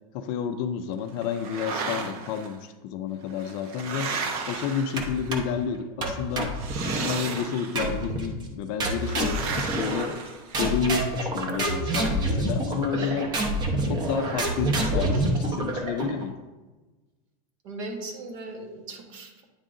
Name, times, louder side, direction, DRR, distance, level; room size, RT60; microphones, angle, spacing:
voice 1, 0.1-4.1 4.5-6.5 6.8-10.1 10.6-13.3 13.8-16.4, left 7 dB, 35° left, 8 dB, 0.4 m, -30 dB
sound 1, 1.2-2.5 3.3-5.4 6.5-7.9 9.0-10.9, right 4 dB, 80° right, 1.2 m, -34 dB
sound 2, 5.0-5.6 6.0-7.2 7.8-8.3 8.8-10.3 10.5-16.2, right 1 dB, 20° right, 0.8 m, -27 dB
voice 2, 17.6-19.4, right 2 dB, 55° right, 2 dB, 1.4 m, -38 dB
9.5 x 3.8 x 3.7 m, 1.2 s
supercardioid pair, 170°, 19 cm